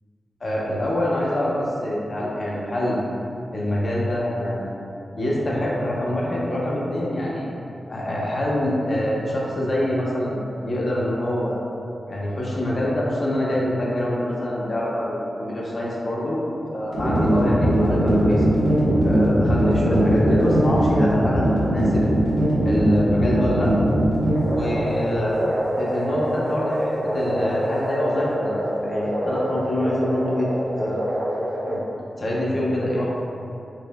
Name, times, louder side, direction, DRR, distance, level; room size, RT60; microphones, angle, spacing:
voice 1, 0.4-3.0 3.5-4.7 5.2-7.4 7.9-11.6 12.1-16.4 16.7-18.6 19.0-22.0 22.6-23.7 24.5-25.4 25.8-30.5 30.8-31.0 31.7-31.8 32.2-33.1, left 1 dB, 40° left, -5 dB, 0.8 m, -25 dB
sound 1, 16.9-31.7, equal, 90° right, 1.1 m, -21 dB
4.2 x 3.7 x 2.2 m, 2.6 s
wide cardioid pair, 125°, 0 cm